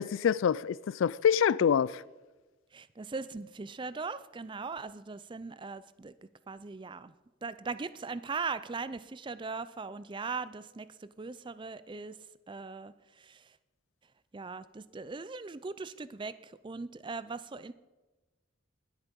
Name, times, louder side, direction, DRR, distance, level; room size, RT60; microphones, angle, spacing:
voice 1, 0.0-2.0, left 8 dB, 70° left, 0.3 m, -26 dB
voice 2, 2.7-6.1 6.5-7.1 7.4-12.1 12.5-13.6 14.3-17.7, right 4 dB, 25° right, 0.4 m, -39 dB
20.0 x 8.2 x 5.3 m
head